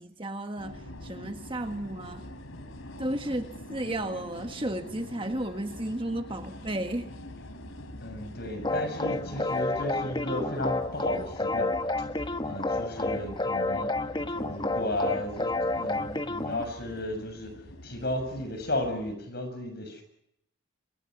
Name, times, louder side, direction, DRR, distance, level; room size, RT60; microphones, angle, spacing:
voice 1, 0.0-2.2 3.0-7.1, right 1 dB, 25° right, 1.5 m, -33 dB
sound 1, 0.6-19.2, left 1 dB, 80° left, 3.4 m, -45 dB
voice 2, 8.0-11.7 12.4-13.9 14.3-17.5 17.8-20.0, left 1 dB, 50° left, 7.0 m, -34 dB
sound 2, 8.6-16.6, left 2 dB, 20° left, 1.0 m, -30 dB
28.0 x 24.5 x 6.3 m
head